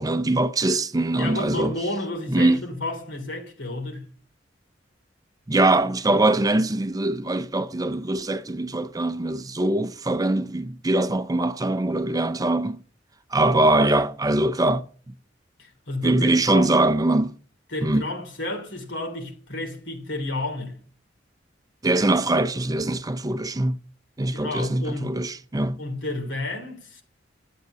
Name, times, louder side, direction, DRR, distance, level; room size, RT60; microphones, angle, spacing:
voice 1, 0.0-1.7 2.3-2.6 5.5-12.8 13.3-14.8 16.0-17.4 17.8-18.0 21.8-23.8 24.2-25.8, right 2 dB, 20° right, 0.5 m, -22 dB
voice 2, 1.1-4.1 15.6-16.7 17.7-20.8 24.3-25.1 25.8-27.0, left 2 dB, 75° left, 3.2 m, -31 dB
12.0 x 7.9 x 6.7 m
head